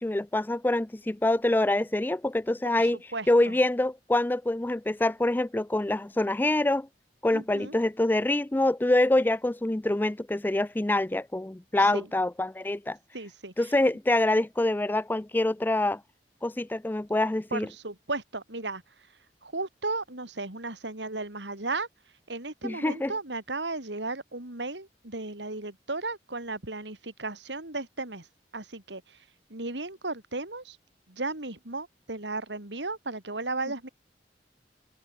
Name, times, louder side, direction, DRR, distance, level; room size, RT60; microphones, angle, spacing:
voice 1, 0.0-3.0 3.3-6.9 7.2-13.0 13.6-16.0 16.4-17.7 22.6-23.1, left 1 dB, 10° left, 0.4 m, -25 dB
voice 2, 2.7-3.6 7.3-7.8 11.8-12.1 13.1-13.7 17.5-18.8 19.4-21.9 22.3-28.3 28.5-29.2 29.5-30.8 31.1-33.9, right 3 dB, 85° right, 4.1 m, -35 dB
open air
head